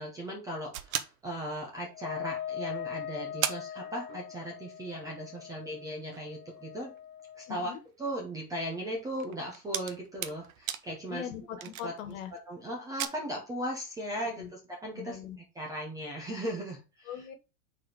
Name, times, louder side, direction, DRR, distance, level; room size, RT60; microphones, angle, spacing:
voice 1, 0.0-6.9 7.4-7.7 8.0-11.3 11.6-11.9 12.5-15.2 15.6-17.2, right 1 dB, 10° right, -1 dB, 0.7 m, -37 dB
sound 1, 0.7-2.1 2.7-2.8 3.0-3.1 3.4-4.6 4.9-5.0 5.6-12.4 12.8-13.1, right 11 dB, 60° right, 0.8 m, -39 dB
Wind instrument woodwind instrument, 1.9-7.6, left 10 dB, 75° left, 1.0 m, -41 dB
voice 2, 7.5-7.8 11.1-12.3 14.2-14.5 14.9-15.4 17.1-17.3, left 9 dB, 60° left, 7 dB, 1.7 m, -41 dB
4.9 x 4.3 x 4.9 m, 0.29 s
supercardioid pair, 170°, 45 cm